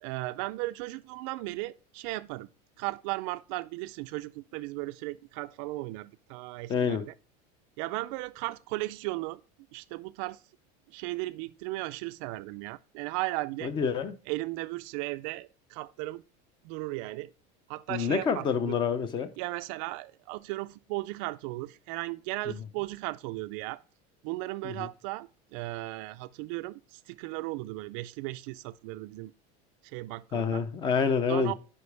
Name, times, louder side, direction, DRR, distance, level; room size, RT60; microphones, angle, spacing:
voice 1, 0.0-2.5 2.8-7.1 7.8-9.4 9.7-10.4 10.9-13.7 14.3-16.2 16.6-17.3 17.7-18.7 19.4-23.8 24.2-29.3 29.8-30.6 31.3-31.5, right 20 dB, 55° right, 0.4 m, -36 dB
voice 2, 6.7-7.1 13.6-14.1 17.9-19.3 24.6-24.9 30.3-31.5, left 6 dB, 25° left, 0.6 m, -27 dB
9.7 x 5.1 x 3.3 m
cardioid pair, 170°, 20 cm